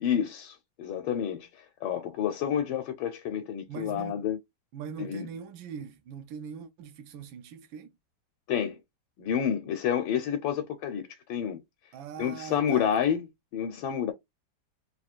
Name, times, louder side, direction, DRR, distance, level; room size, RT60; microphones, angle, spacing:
voice 1, 0.0-4.4 5.0-5.3 8.5-8.8 9.2-11.6 12.2-13.3 13.5-14.1, left 8 dB, 90° left, 1.5 m, -29 dB
voice 2, 3.7-4.2 4.7-7.9 11.9-12.9, right 7 dB, 85° right, 1.4 m, -41 dB
3.8 x 2.4 x 4.3 m
omnidirectional pair, 2.1 m